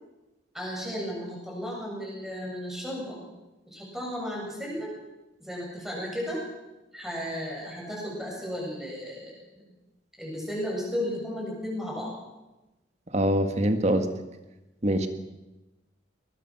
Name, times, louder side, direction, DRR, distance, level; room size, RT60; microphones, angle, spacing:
voice 1, 0.5-3.2 3.7-5.0 5.4-6.4 6.9-9.3 10.2-12.1, equal, ahead, -3 dB, 7.8 m, -34 dB
voice 2, 13.1-14.1 14.8-15.1, right 1 dB, 35° right, 7 dB, 1.8 m, -23 dB
22.5 x 21.0 x 6.1 m, 1.0 s
head